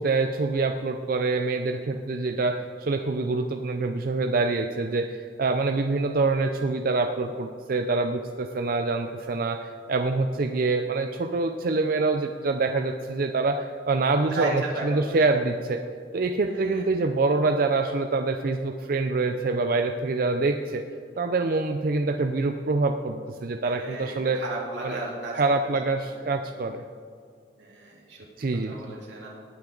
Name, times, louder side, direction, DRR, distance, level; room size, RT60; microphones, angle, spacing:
voice 1, 0.0-15.8 16.1-20.8 21.2-24.4 24.8-25.0 25.3-26.8 28.4-28.8, right 3 dB, 50° right, 6 dB, 0.5 m, -25 dB
voice 2, 14.3-15.0 16.5-16.9 23.6-25.4 25.7-25.8 27.6-28.2 28.6-29.3, right 2 dB, 85° right, -4 dB, 3.2 m, -35 dB
18.5 x 9.0 x 3.9 m, 2.2 s
head